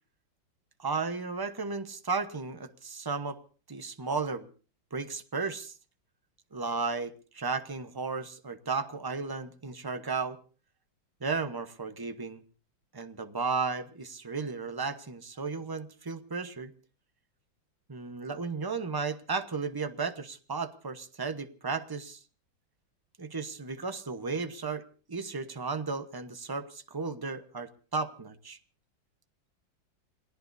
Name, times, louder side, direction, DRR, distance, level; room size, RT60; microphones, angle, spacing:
voice 1, 0.8-3.4 3.7-4.5 4.9-5.7 6.5-10.4 11.2-12.4 12.9-16.7 17.9-22.2 23.2-24.8 25.1-28.6, right 4 dB, 20° right, 9 dB, 0.5 m, -34 dB
28.5 x 19.0 x 2.7 m, 0.39 s
omnidirectional pair, 2.1 m